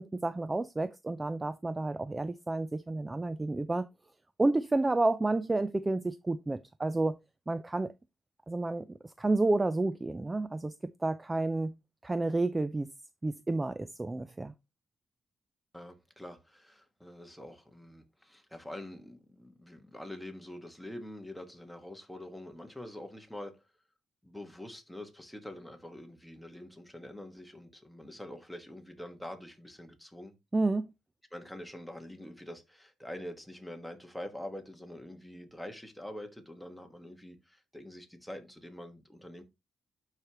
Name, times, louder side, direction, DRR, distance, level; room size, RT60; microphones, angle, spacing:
voice 1, 0.0-3.9 4.4-7.2 7.5-7.9 8.5-11.8 12.0-12.9 13.2-14.5 30.5-30.9, right 2 dB, 15° right, 0.4 m, -30 dB
voice 2, 15.7-23.7 24.2-30.4 31.3-39.4, left 1 dB, ahead, 1.5 m, -45 dB
11.5 x 4.9 x 3.0 m
cardioid pair, 125°, 0 cm